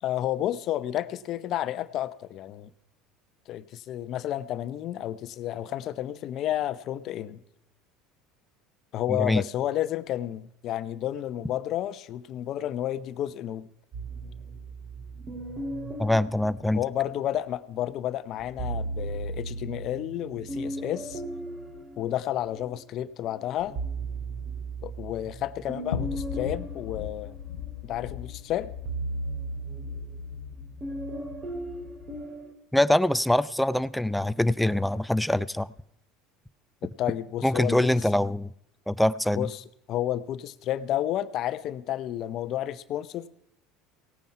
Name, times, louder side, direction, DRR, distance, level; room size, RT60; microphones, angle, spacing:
voice 1, 0.0-2.7 3.5-7.4 8.9-13.7 16.7-21.2 22.0-23.8 24.8-27.4 27.8-28.7 36.8-37.9 39.3-43.3, left 12 dB, 55° left, 14 dB, 0.8 m, -31 dB
voice 2, 9.1-9.4 16.0-16.8 32.7-35.7 37.4-38.5 38.9-39.5, left 1 dB, 5° left, 17 dB, 0.5 m, -24 dB
sound 1, 13.9-17.4 18.4-22.8 23.3-32.5, right 2 dB, 35° right, 2.9 m, -37 dB
sound 2, 25.9-32.2, left 9 dB, 90° left, 1.0 m, -38 dB
18.0 x 9.1 x 5.6 m, 0.76 s
hypercardioid pair, 85°, 0 cm